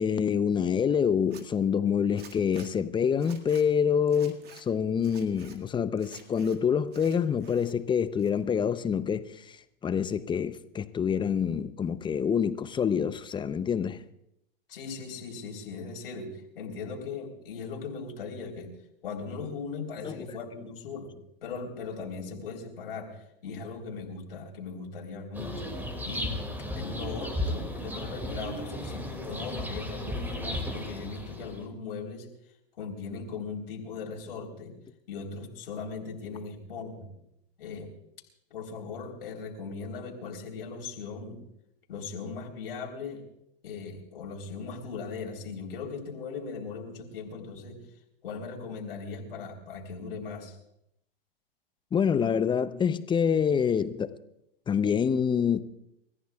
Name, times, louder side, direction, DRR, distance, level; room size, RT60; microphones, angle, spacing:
voice 1, 0.0-9.6 9.8-14.0 20.0-20.3 51.9-54.2 54.7-55.6, left 7 dB, 15° left, 0.7 m, -26 dB
Zipper (clothing), 1.2-1.4 2.2-2.7 3.2-3.6 4.1-4.6 5.0-5.6 6.0-6.6 6.9-7.7 8.0-8.6, right 7 dB, 35° right, 2.0 m, -51 dB
voice 2, 14.7-18.7 19.0-21.1 21.4-25.7 26.0-26.4 26.8-32.3 32.8-34.8 35.1-37.1 37.6-37.9 38.5-41.4 41.9-43.2 43.6-47.8 48.2-50.6, left 4 dB, 75° left, 3.9 m, -39 dB
sound 1, 25.3-31.7, left 1 dB, 5° right, 2.3 m, -35 dB
30.0 x 14.5 x 2.4 m
hypercardioid pair, 110°, 29 cm